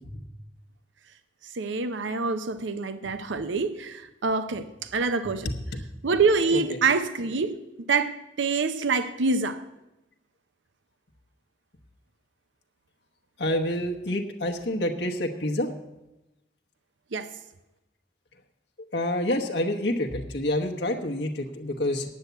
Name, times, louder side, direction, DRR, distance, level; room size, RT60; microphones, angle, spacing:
voice 1, 1.5-4.7 4.9-5.5 6.0-7.6 7.9-9.6 17.1-17.3, right 4 dB, 85° right, 11 dB, 0.6 m, -26 dB
voice 2, 13.4-15.7 18.9-22.0, left 1 dB, 65° left, 2 dB, 1.0 m, -27 dB
9.5 x 8.0 x 8.1 m, 0.97 s
head